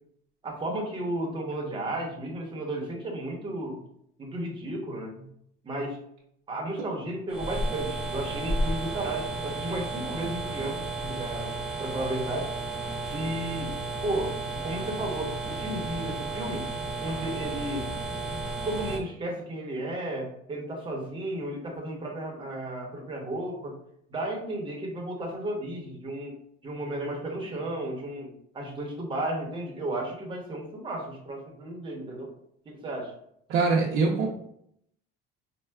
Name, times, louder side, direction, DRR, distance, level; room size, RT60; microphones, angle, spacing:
voice 1, 0.4-3.8 4.2-5.3 5.6-6.0 6.5-11.5 11.8-12.5 13.1-13.7 14.0-16.7 17.0-17.8 18.6-23.8 24.1-26.4 26.6-32.3 32.6-33.1, right 1 dB, 25° right, -1 dB, 0.8 m, -33 dB
sound 1, 7.3-19.0, right 2 dB, 5° right, 0.3 m, -33 dB
voice 2, 33.5-34.3, right 4 dB, 70° right, -3 dB, 0.6 m, -23 dB
4.3 x 2.2 x 2.2 m, 0.72 s
cardioid pair, 125°, 21 cm